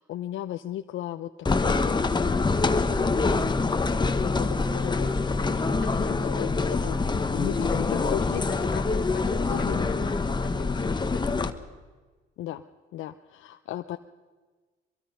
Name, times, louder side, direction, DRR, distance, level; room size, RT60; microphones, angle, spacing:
voice 1, 0.0-2.5 2.9-8.4 9.5-9.9 12.4-12.6 12.9-14.0, left 13 dB, 85° left, 8 dB, 0.7 m, -36 dB
sound 1, 1.5-11.5, left 3 dB, 20° left, 1.2 m, -25 dB
voice 2, 5.8-6.2 7.7-11.6, left 7 dB, 60° left, 8 dB, 2.2 m, -38 dB
23.0 x 23.0 x 5.6 m, 1.3 s
cardioid pair, 90°, 20 cm